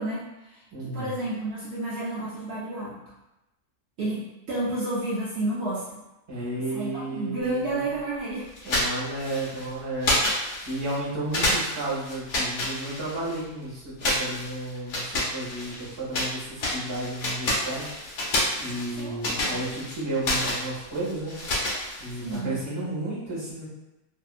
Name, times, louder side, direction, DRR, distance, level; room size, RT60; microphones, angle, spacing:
voice 1, 0.0-3.0 4.0-6.0 6.7-8.5 11.4-11.6 18.7-19.5 22.2-22.6, right 2 dB, 80° right, -8 dB, 0.5 m, -31 dB
voice 2, 0.7-1.2 6.3-7.9 8.6-10.1 10.7-17.9 18.6-21.4 22.0-23.6, right 1 dB, 20° right, -7 dB, 0.7 m, -32 dB
sound 1, 8.6-9.7 10.0-11.0 11.3-13.4 14.0-16.3 16.6-22.4, left 1 dB, 60° left, 0.9 m, -29 dB
2.7 x 2.6 x 2.4 m, 0.95 s
omnidirectional pair, 1.8 m